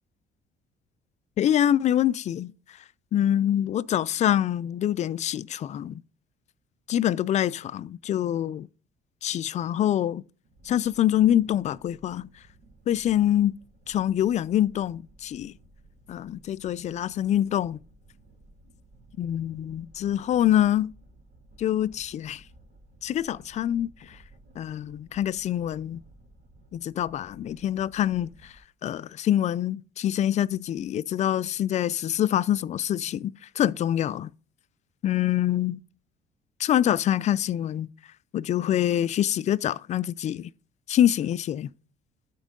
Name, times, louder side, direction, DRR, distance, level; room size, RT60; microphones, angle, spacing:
voice 1, 1.4-2.5 3.1-6.0 6.9-8.7 9.2-10.2 10.6-12.3 12.9-13.6 13.9-15.5 16.1-17.8 19.2-20.9 21.6-22.4 23.0-24.2 24.6-26.0 26.7-28.5 28.8-34.3 35.0-35.8 36.6-37.9 38.3-40.5 40.9-41.7, left 11 dB, 45° left, 0.4 m, -25 dB
sound 1, 10.4-28.6, right 1 dB, 65° right, 2.4 m, -55 dB
12.5 x 4.5 x 3.7 m
cardioid pair, 110°, 17 cm